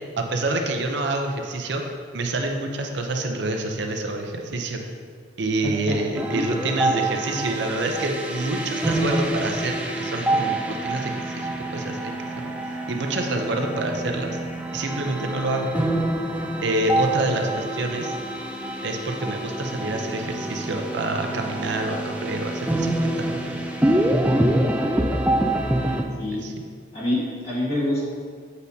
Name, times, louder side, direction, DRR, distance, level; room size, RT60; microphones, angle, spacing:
voice 1, 0.2-1.8 2.1-4.8 5.4-12.5 12.9-14.4 14.7-15.7 16.6-18.1 18.8-22.9 23.2-23.4 26.4-26.5, right 2 dB, 60° right, 3 dB, 0.6 m, -27 dB
voice 2, 5.6-6.0 17.3-17.6 25.8-26.4 26.9-28.1, left 1 dB, 30° left, -7 dB, 1.5 m, -27 dB
sound 1, 6.1-26.0, right 1 dB, 5° right, 0.3 m, -26 dB
8.2 x 5.3 x 2.8 m, 2.1 s
head